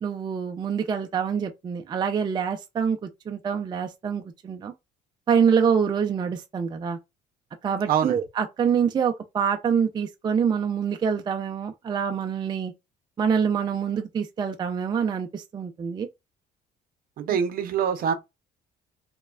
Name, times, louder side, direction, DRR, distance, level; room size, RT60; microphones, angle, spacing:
voice 1, 0.0-4.7 5.3-7.0 7.6-12.7 13.2-16.1, right 7 dB, 25° right, 0.4 m, -25 dB
voice 2, 7.9-8.2 17.2-18.1, right 8 dB, 60° right, 0.6 m, -24 dB
3.0 x 2.2 x 2.3 m
cardioid pair, 110°, 17 cm